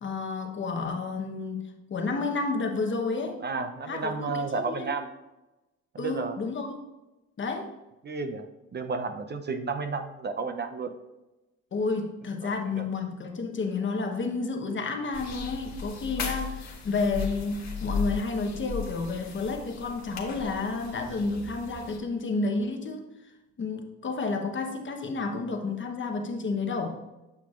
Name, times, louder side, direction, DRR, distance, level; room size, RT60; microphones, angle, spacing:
voice 1, 0.0-3.4 3.9-4.9 6.0-6.8 7.4-7.7 11.7-23.1 23.6-27.0, left 3 dB, 40° left, 4 dB, 1.0 m, -31 dB
voice 2, 3.4-5.1 5.9-6.4 8.0-8.4 8.7-10.9 12.4-12.8 16.1-16.3, right 4 dB, 35° right, 8 dB, 0.6 m, -32 dB
sound 1, 15.1-22.0, left 6 dB, 65° left, 1.4 m, -36 dB
8.7 x 6.0 x 2.5 m, 1.0 s
cardioid pair, 90°, 30 cm